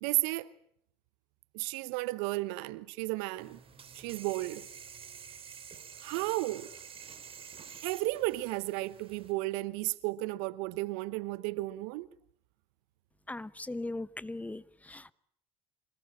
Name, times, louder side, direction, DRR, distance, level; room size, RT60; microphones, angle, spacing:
voice 1, 0.0-0.5 1.5-3.6 3.9-4.7 6.0-6.7 7.8-12.1, right 20 dB, 70° right, 0.9 m, -33 dB
sound 1, 3.4-9.3, right 7 dB, 45° right, 3.6 m, -49 dB
voice 2, 13.3-14.6 14.9-15.1, left 2 dB, 10° left, 0.9 m, -38 dB
26.5 x 18.5 x 8.7 m
hypercardioid pair, 60°, 13 cm